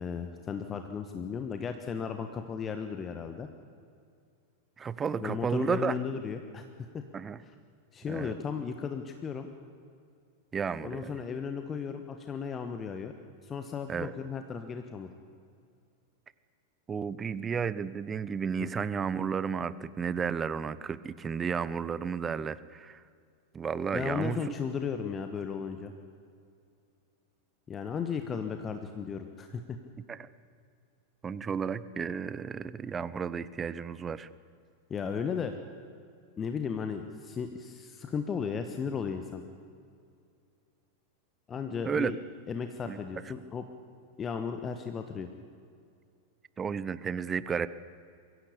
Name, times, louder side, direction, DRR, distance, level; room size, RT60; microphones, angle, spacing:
voice 1, 0.0-3.5 5.2-6.6 6.9-7.0 7.9-9.5 10.8-13.1 13.4-15.1 18.6-18.7 23.9-25.9 27.7-29.8 34.9-35.6 36.4-39.4 41.5-42.2 42.5-43.6 44.2-45.3, left 6 dB, 25° left, 7 dB, 1.3 m, -35 dB
voice 2, 4.8-5.9 7.1-7.4 8.1-8.4 10.5-11.2 13.9-14.1 16.9-23.0 23.5-24.5 30.1-30.3 31.2-34.3 41.8-42.1 42.9-43.0 46.6-47.7, right 6 dB, 20° right, 16 dB, 0.8 m, -32 dB
23.5 x 16.0 x 8.5 m, 2.3 s
figure-of-eight pair, 90°, 0 cm